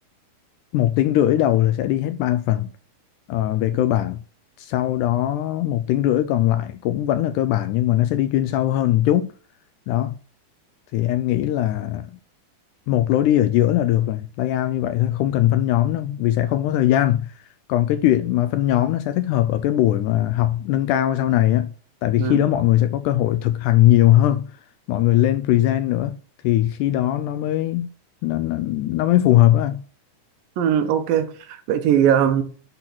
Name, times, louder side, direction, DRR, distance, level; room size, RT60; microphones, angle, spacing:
voice 1, 0.7-2.7 3.3-4.2 4.6-9.3 9.9-10.2 10.9-12.2 12.9-17.3 17.7-21.7 22.0-24.5 24.9-26.2 26.4-27.9 28.2-29.8, left 13 dB, 80° left, 1.8 m, -20 dB
voice 2, 30.6-32.4, right 9 dB, 85° right, 2.7 m, -20 dB
10.5 x 4.0 x 6.1 m
omnidirectional pair, 3.9 m